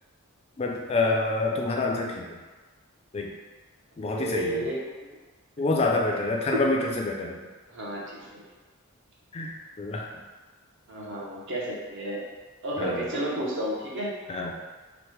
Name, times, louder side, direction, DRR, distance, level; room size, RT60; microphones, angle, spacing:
voice 1, 0.6-2.4 3.1-3.3 4.0-4.7 5.6-7.4 9.3-10.1 12.8-13.1 14.3-14.6, left 2 dB, 30° left, 0 dB, 0.3 m, -27 dB
voice 2, 4.0-4.8 5.8-5.9 6.5-6.6 7.7-8.5 10.9-12.2 12.6-14.1, right 1 dB, 55° right, -4 dB, 0.6 m, -31 dB
3.0 x 2.0 x 3.1 m, 1.3 s
head